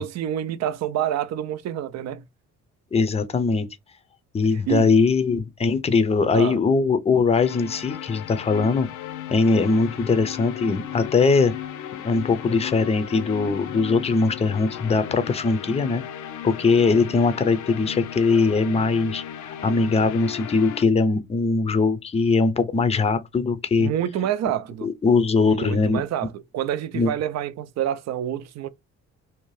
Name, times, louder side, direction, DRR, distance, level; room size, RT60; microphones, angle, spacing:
voice 1, 0.0-2.2 4.7-4.9 6.3-6.6 23.8-24.9 25.4-28.7, right 10 dB, 60° right, 0.5 m, -27 dB
voice 2, 2.9-3.7 4.3-8.9 9.3-11.5 12.0-16.0 16.4-23.9 24.8-26.0 26.9-27.1, left 4 dB, 20° left, 0.5 m, -21 dB
sound 1, 7.4-20.8, left 10 dB, 75° left, 0.5 m, -36 dB
2.7 x 2.2 x 3.0 m
cardioid pair, 90°, 30 cm